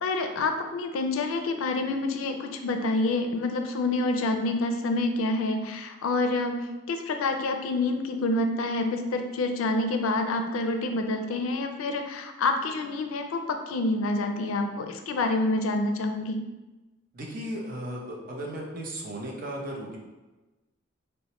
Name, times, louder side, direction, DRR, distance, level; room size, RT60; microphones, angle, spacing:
voice 1, 0.0-16.4, left 2 dB, 90° left, 5 dB, 0.4 m, -27 dB
voice 2, 17.1-20.0, right 1 dB, 45° right, -2 dB, 0.6 m, -35 dB
4.2 x 2.1 x 2.9 m, 1.1 s
head